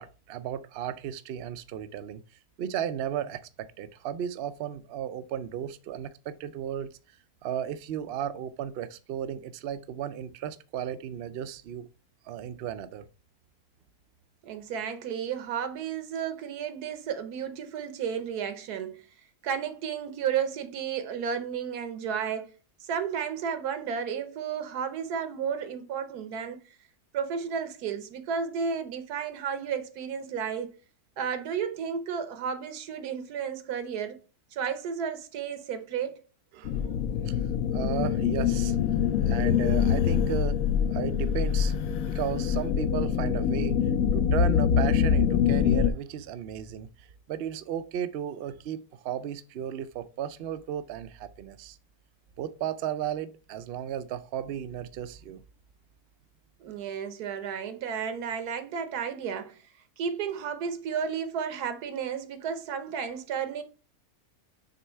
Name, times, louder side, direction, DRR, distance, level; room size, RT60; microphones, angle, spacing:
voice 1, 0.0-2.2 2.6-6.9 7.4-11.9 12.3-13.0 36.5-36.9 37.2-37.4 37.7-38.8 39.2-40.6 40.9-43.8 44.1-46.9 47.3-51.8 52.4-55.4, right 10 dB, 70° right, 0.5 m, -34 dB
voice 2, 14.4-19.0 19.4-22.5 22.8-26.6 27.1-30.8 31.2-34.2 34.5-36.2 56.6-59.6 60.0-63.6, right 7 dB, 85° right, 1.4 m, -32 dB
sound 1, 36.6-45.9, left 8 dB, 70° left, 0.9 m, -25 dB
6.6 x 3.2 x 4.4 m
omnidirectional pair, 1.6 m